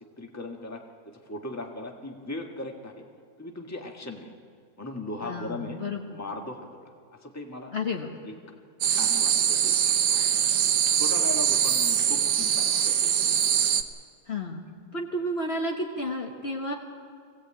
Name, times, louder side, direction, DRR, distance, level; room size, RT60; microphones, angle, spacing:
voice 1, 0.2-3.0 3.4-4.3 4.8-5.8 6.1-6.9 7.2-7.7 8.2-8.3 8.9-9.8 10.9-13.4, left 2 dB, 10° left, 2 dB, 1.5 m, -38 dB
voice 2, 5.2-6.0 7.7-8.1 14.3-14.7 14.9-16.7, left 1 dB, 40° left, 0 dB, 1.4 m, -31 dB
sound 1, 8.8-13.8, right 9 dB, 85° right, 1.5 m, -23 dB
22.0 x 16.0 x 8.7 m, 2.1 s
omnidirectional pair, 1.7 m